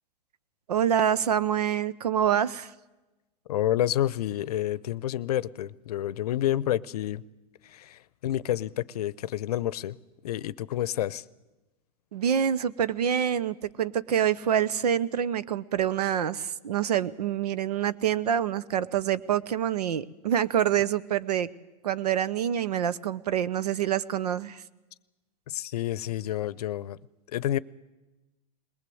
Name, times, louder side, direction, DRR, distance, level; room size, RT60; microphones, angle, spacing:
voice 1, 0.7-2.7 12.1-21.5 21.8-24.6, right 9 dB, 80° right, 0.9 m, -26 dB
voice 2, 3.5-7.2 7.6-10.0 10.2-11.2 25.5-27.0 27.3-27.6, left 12 dB, 75° left, 0.7 m, -29 dB
21.0 x 19.0 x 7.8 m
hypercardioid pair, 110°, 20 cm